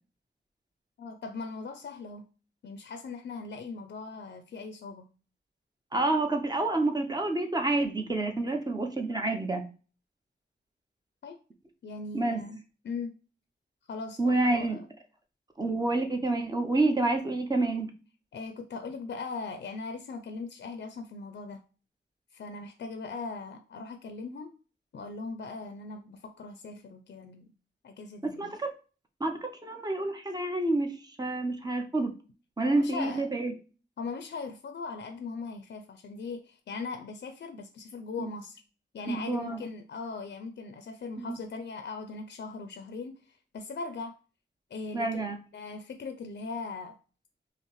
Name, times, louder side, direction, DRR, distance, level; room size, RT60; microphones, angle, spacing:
voice 1, 1.0-2.2 2.6-5.1 11.2-11.4 11.8-12.6 12.8-13.1 13.9-14.8 18.3-21.6 22.3-24.5 24.9-27.5 27.8-28.5 32.6-33.3 34.0-38.6 38.9-44.2 44.7-47.0, left 4 dB, 65° left, 0.4 m, -39 dB
voice 2, 5.9-9.6 12.1-12.4 14.2-14.8 15.6-17.9 28.2-28.7 29.2-32.1 32.6-33.5 38.2-38.3 39.1-39.6 41.2-41.4 44.9-45.4, right 2 dB, 20° right, 0.6 m, -28 dB
5.3 x 2.0 x 3.0 m
wide cardioid pair, 130°, 19 cm